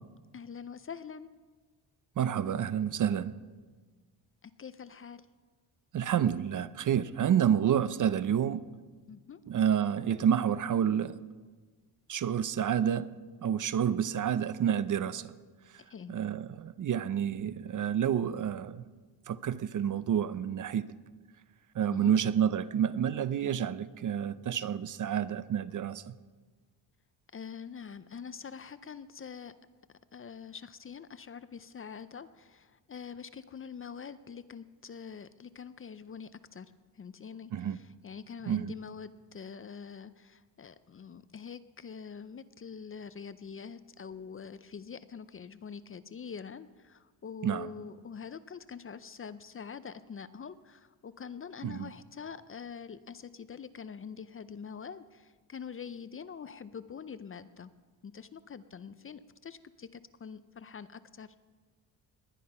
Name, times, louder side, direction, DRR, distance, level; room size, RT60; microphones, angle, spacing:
voice 1, 0.3-1.3 4.4-5.2 9.1-9.4 15.8-16.2 21.9-22.2 27.3-29.5 30.1-36.7 36.9-57.7 58.0-61.4, left 6 dB, 30° left, 0.5 m, -45 dB
voice 2, 2.2-3.4 5.9-8.7 9.5-11.2 12.1-13.1 13.4-15.3 16.1-18.9 19.3-20.9 21.7-26.2 37.5-37.8 38.5-38.7 47.4-47.7 51.6-51.9, right 9 dB, 45° right, 0.6 m, -29 dB
20.0 x 10.5 x 5.5 m
cardioid pair, 115°, 44 cm